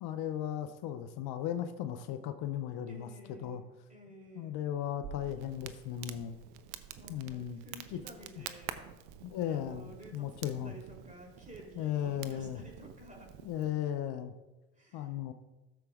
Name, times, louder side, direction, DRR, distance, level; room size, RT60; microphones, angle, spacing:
voice 1, 0.0-3.1 3.4-3.6 4.4-6.4 7.1-7.6 7.9-8.0 8.4-8.5 9.2-10.7 11.8-12.6 13.4-14.3 14.9-15.3, left 10 dB, 60° left, 9 dB, 0.8 m, -36 dB
voice 2, 2.9-3.6 3.9-4.5 7.0-8.8 9.4-13.3 14.8-15.1, equal, 15° right, 0 dB, 3.3 m, -52 dB
Crackle, 5.0-13.7, right 10 dB, 75° right, 0.7 m, -48 dB
13.5 x 7.0 x 2.5 m, 1.0 s
hypercardioid pair, 65°, 43 cm